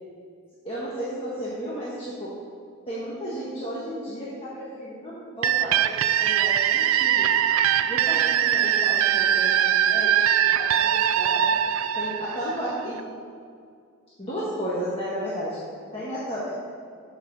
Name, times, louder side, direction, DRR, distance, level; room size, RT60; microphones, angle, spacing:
voice 1, 0.6-2.3 2.9-7.3 7.8-11.5 11.9-13.0 14.2-15.6 15.9-16.5, equal, 25° left, -8 dB, 1.4 m, -33 dB
sound 1, 5.4-13.0, right 10 dB, 85° right, 0.4 m, -22 dB
7.3 x 6.0 x 6.8 m, 2.2 s
head